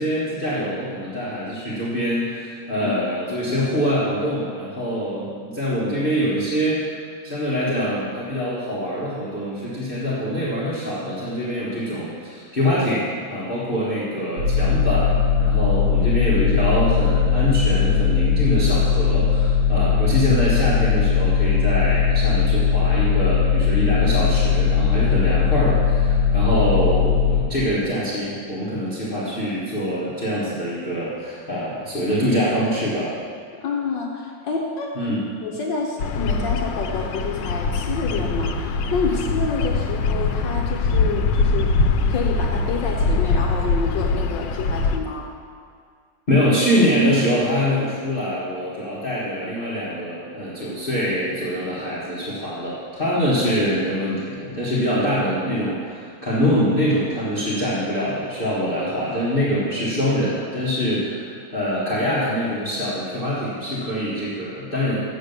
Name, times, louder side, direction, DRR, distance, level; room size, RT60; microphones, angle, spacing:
voice 1, 0.0-6.8 7.2-33.1 34.9-35.2 46.3-65.0, equal, 30° left, -9 dB, 1.6 m, -24 dB
sound 1, 14.4-27.4, left 6 dB, 60° right, 1.8 m, -19 dB
voice 2, 33.6-35.1 35.4-41.7 42.1-45.3, left 4 dB, 70° left, 1 dB, 1.5 m, -28 dB
Bird vocalization bird call bird song, 36.0-45.0, left 3 dB, 85° left, 1.5 m, -22 dB
8.1 x 7.5 x 6.8 m, 2.1 s
omnidirectional pair, 2.2 m